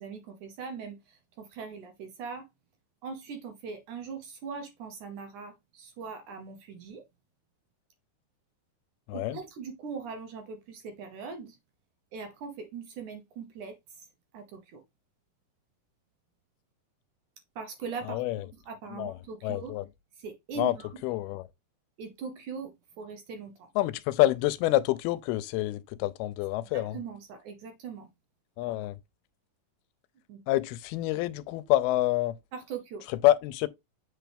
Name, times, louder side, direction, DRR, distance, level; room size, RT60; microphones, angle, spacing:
voice 1, 0.0-2.5 3.0-7.0 9.1-11.6 12.1-14.1 14.3-14.8 17.6-18.2 18.7-19.7 20.2-20.8 22.0-23.7 26.7-28.1 30.3-30.4 32.5-33.1, right 5 dB, 70° right, 2.0 m, -41 dB
voice 2, 9.1-9.4 18.0-18.5 18.9-19.9 20.6-20.8 21.0-21.5 23.8-27.0 28.6-29.0 30.5-32.4 33.1-33.7, left 16 dB, 85° left, 2.4 m, -27 dB
8.1 x 4.6 x 3.4 m
omnidirectional pair, 4.4 m